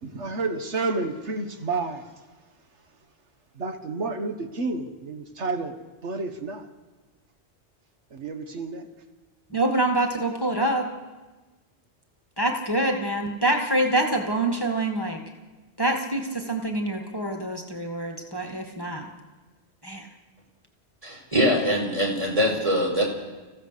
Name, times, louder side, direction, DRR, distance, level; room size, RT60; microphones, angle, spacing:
voice 1, 0.0-2.1 3.6-5.7 6.0-6.7 8.1-8.9, right 3 dB, 85° right, 6 dB, 1.6 m, -30 dB
voice 2, 9.5-10.9 12.4-15.2 15.8-19.1 19.8-20.1, right 1 dB, 20° left, 2 dB, 1.8 m, -25 dB
voice 3, 21.0-23.0, equal, 30° right, -1 dB, 5.1 m, -23 dB
26.0 x 15.5 x 6.7 m, 1.2 s
omnidirectional pair, 1.2 m